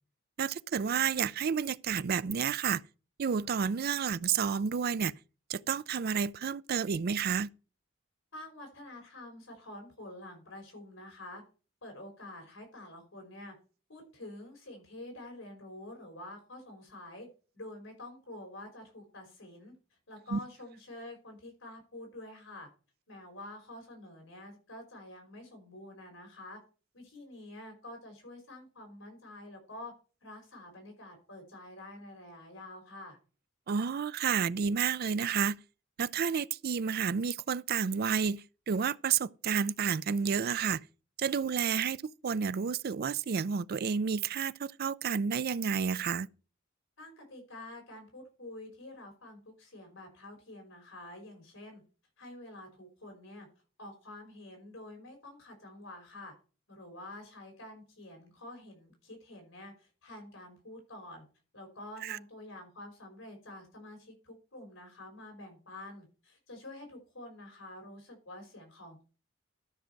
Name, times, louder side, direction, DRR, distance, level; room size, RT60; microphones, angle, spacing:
voice 1, 0.4-2.8 3.2-5.1 5.5-7.5 20.3-20.4 33.7-35.6 36.0-40.8 41.2-46.3 62.0-62.2, right 6 dB, 50° right, 0.4 m, -30 dB
voice 2, 8.3-11.4 11.8-13.5 13.9-17.3 17.5-19.7 20.1-22.7 23.1-26.6 26.9-29.9 30.2-33.2 47.0-51.8 52.2-53.5 53.8-56.3 56.7-61.2 61.5-69.0, left 1 dB, 75° left, 5.4 m, -48 dB
12.5 x 6.4 x 4.6 m
head